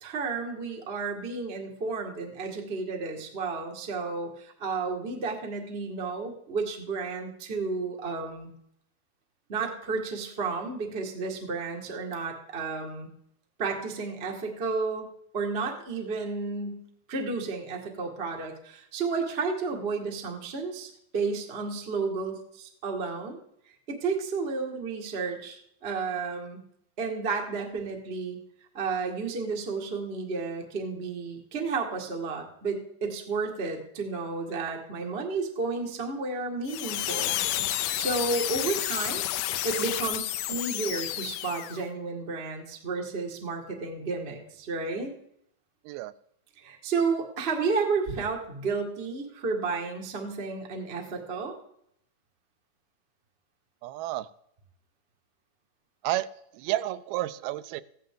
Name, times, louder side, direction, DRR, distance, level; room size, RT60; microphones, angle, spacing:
voice 1, 0.0-8.5 9.5-13.1 13.6-15.1 15.3-16.8 17.1-23.4 23.9-26.6 27.0-28.4 28.7-37.4 37.7-39.2 39.6-45.1 46.6-51.6, right 4 dB, 55° right, 1 dB, 0.6 m, -32 dB
sound 1, 36.7-41.9, left 13 dB, 80° left, 2.1 m, -30 dB
voice 2, 53.8-54.3 56.0-56.3 56.5-57.8, right 15 dB, 85° right, 14 dB, 2.5 m, -31 dB
15.0 x 11.5 x 3.7 m, 0.71 s
omnidirectional pair, 4.3 m